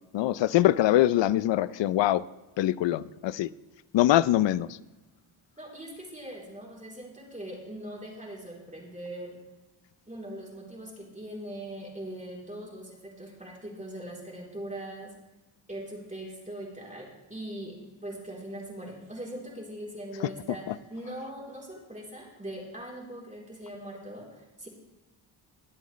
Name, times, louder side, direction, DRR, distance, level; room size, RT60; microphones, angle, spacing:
voice 1, 0.1-2.2 2.6-3.5 3.9-4.7, left 14 dB, 65° left, 0.5 m, -23 dB
voice 2, 5.6-9.4 10.1-15.1 15.7-24.7, right 1 dB, 15° right, 3.3 m, -41 dB
20.5 x 7.7 x 3.2 m
cardioid pair, 85°, 48 cm